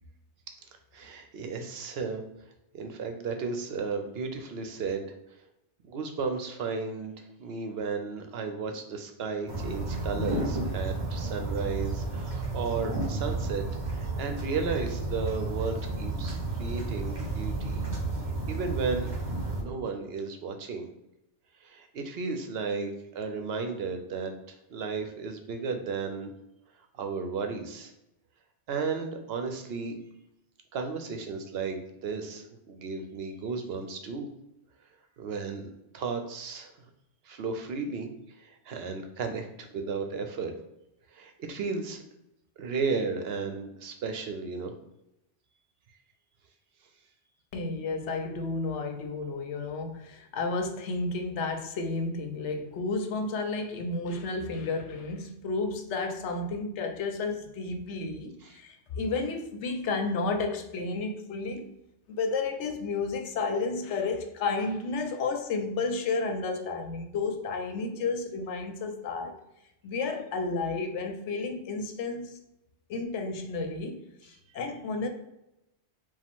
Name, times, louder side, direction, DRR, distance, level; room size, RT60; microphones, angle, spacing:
voice 1, 0.9-2.2 2.7-5.1 5.8-7.1 7.4-13.6 13.9-17.8 18.5-19.1 19.6-20.9 21.6-26.3 26.9-27.9 28.7-30.0 30.7-34.3 35.2-36.7 37.3-38.1 38.4-40.5 41.1-42.0 42.6-44.7 58.5-58.6, right 4 dB, 65° right, 6 dB, 0.8 m, -34 dB
sound 1, 9.5-19.6, right 2 dB, 40° right, 1.3 m, -32 dB
voice 2, 47.5-61.7 62.2-69.4 69.8-72.4 72.9-75.1, left 3 dB, 80° left, 6 dB, 0.9 m, -32 dB
4.8 x 2.4 x 3.6 m, 0.86 s
omnidirectional pair, 1.2 m